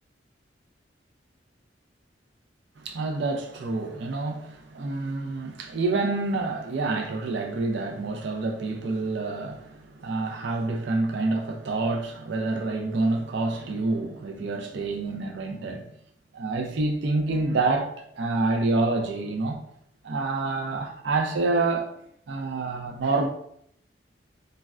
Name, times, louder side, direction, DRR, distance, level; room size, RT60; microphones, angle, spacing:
voice 1, 2.8-15.9 16.3-19.6 20.0-22.0 22.3-23.3, right 3 dB, 70° right, 0.4 m, -27 dB
3.2 x 2.2 x 2.4 m
head